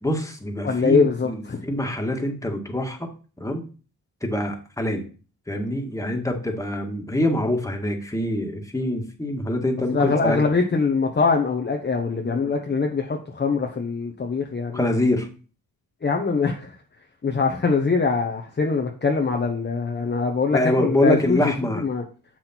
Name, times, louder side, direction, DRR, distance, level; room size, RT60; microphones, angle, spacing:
voice 1, 0.0-3.1 3.4-3.6 4.2-5.0 5.5-10.4 12.2-12.4 14.7-15.3 20.5-21.8, left 1 dB, 10° left, 1.9 m, -25 dB
voice 2, 0.6-1.6 9.9-14.8 16.0-16.7 17.2-21.4 21.7-22.0, left 4 dB, 25° left, 1.0 m, -23 dB
7.5 x 6.0 x 4.4 m
cardioid pair, 85°, 37 cm